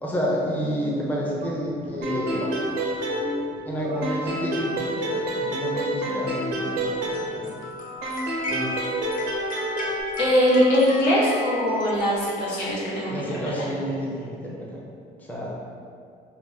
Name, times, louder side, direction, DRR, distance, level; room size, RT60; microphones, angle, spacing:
voice 1, 0.0-2.5 3.7-7.6 8.5-8.9 13.1-14.8 15.2-15.5, equal, 10° left, -4 dB, 0.5 m, -30 dB
sound 1, 1.4-4.8, equal, 40° right, 0.4 m, -37 dB
sound 2, 2.0-3.7 4.0-7.6 8.0-10.0, right 1 dB, 90° right, 0.6 m, -28 dB
sound 3, 6.8-12.6, left 1 dB, 50° left, 0.6 m, -36 dB
voice 2, 10.2-13.4, equal, 85° left, -6 dB, 0.9 m, -21 dB
2.5 x 2.1 x 3.8 m, 2.3 s
cardioid pair, 110°, 17 cm